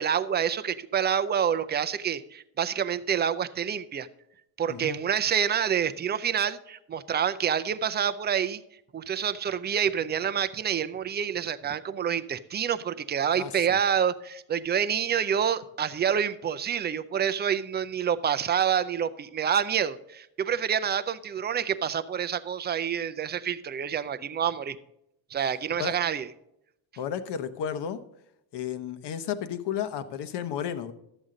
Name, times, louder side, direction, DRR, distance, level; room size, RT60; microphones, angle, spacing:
voice 1, 0.0-4.1 4.6-8.6 8.9-24.8 25.3-26.3, right 8 dB, 25° right, 12 dB, 0.4 m, -27 dB
voice 2, 4.7-5.0 13.3-13.5 25.8-25.9 27.0-28.0 28.5-30.9, left 8 dB, 60° left, 11 dB, 1.0 m, -32 dB
12.5 x 8.0 x 3.8 m, 0.80 s
cardioid pair, 150°, 47 cm